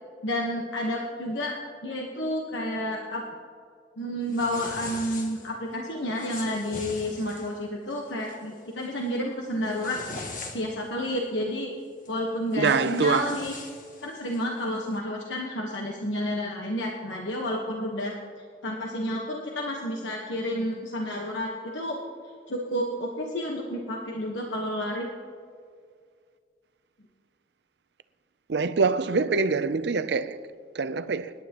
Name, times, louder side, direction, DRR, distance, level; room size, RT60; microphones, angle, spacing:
voice 1, 0.2-1.5 1.8-3.2 4.0-10.0 10.5-11.7 12.1-13.5 14.0-18.1 18.6-22.0 22.5-25.1, left 1 dB, 85° left, 1.3 m, -30 dB
sound 1, 4.3-5.5 6.1-7.6 8.1-8.4 8.8-9.1 9.5-10.9 12.1-12.2 12.5-14.5, left 3 dB, 45° left, 1.6 m, -41 dB
voice 2, 12.6-13.4 28.5-31.3, right 4 dB, 65° right, 0.5 m, -25 dB
25.0 x 11.0 x 3.0 m
head